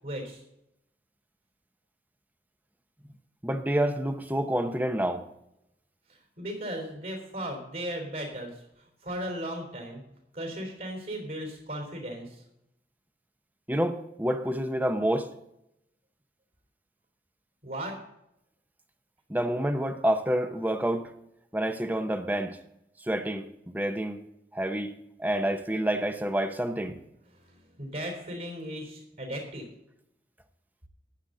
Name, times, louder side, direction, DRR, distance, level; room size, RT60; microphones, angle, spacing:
voice 1, 0.0-0.4 6.4-8.5 9.0-10.0 10.3-12.4 17.6-17.9 27.4-29.7, equal, 55° right, 2 dB, 3.7 m, -36 dB
voice 2, 3.4-5.2 13.7-15.3 19.3-21.1 21.5-22.6 23.0-24.2 24.5-24.9 25.2-27.0, right 1 dB, 10° right, 8 dB, 0.8 m, -28 dB
15.0 x 10.0 x 3.9 m, 0.82 s
head